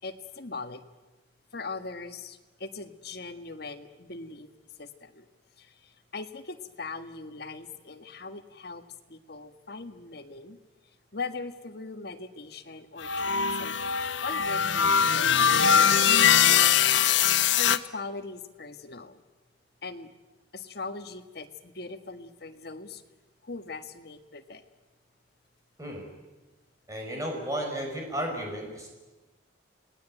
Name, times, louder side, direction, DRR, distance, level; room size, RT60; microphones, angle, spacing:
voice 1, 0.0-0.8 1.5-4.5 4.8-5.3 5.6-10.6 11.1-13.8 14.2-16.0 17.6-19.2 19.8-20.1 20.5-23.0 23.4-24.6, left 3 dB, 55° left, 7 dB, 1.7 m, -40 dB
sound 1, 13.0-17.8, left 8 dB, 75° left, 0.9 m, -22 dB
voice 2, 26.9-28.9, equal, 15° right, 1 dB, 6.1 m, -33 dB
28.5 x 19.5 x 9.1 m, 1.2 s
head